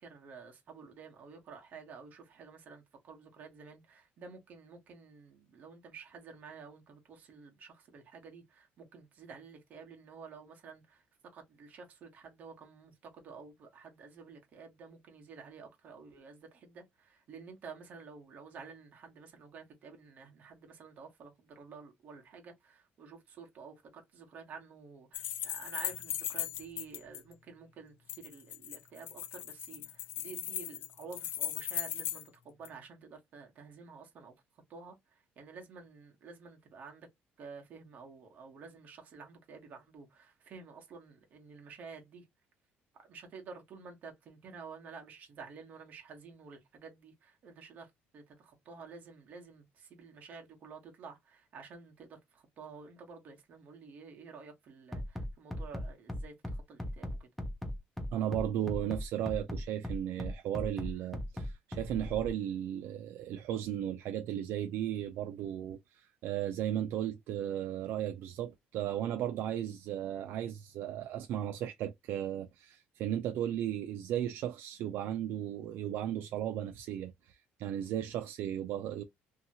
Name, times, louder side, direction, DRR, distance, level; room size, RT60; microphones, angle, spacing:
voice 1, 0.0-11.0 11.3-34.3 34.7-37.1 37.4-42.2 43.0-57.3 61.0-61.1, right 5 dB, 40° right, 1.0 m, -51 dB
sound 1, 25.1-27.2 28.1-32.3 32.6-32.7, left 11 dB, 60° left, 0.4 m, -38 dB
Bass drum, 54.9-62.3, left 1 dB, ahead, 0.6 m, -37 dB
voice 2, 58.1-79.0, right 11 dB, 60° right, 0.3 m, -35 dB
2.8 x 2.7 x 2.7 m
cardioid pair, 170°, 4 cm